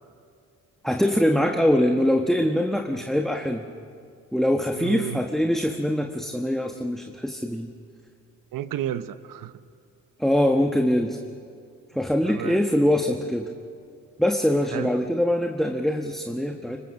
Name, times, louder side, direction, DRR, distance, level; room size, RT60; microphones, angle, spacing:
voice 1, 0.8-3.7 4.3-7.7 10.2-11.2 11.9-13.5 14.2-16.8, equal, ahead, 4 dB, 1.3 m, -23 dB
voice 2, 4.8-5.2 8.5-9.5 12.2-12.6 14.7-14.9 16.5-16.6, right 11 dB, 70° right, 12 dB, 0.9 m, -32 dB
24.0 x 19.5 x 6.5 m, 2.2 s
supercardioid pair, 70°, 33 cm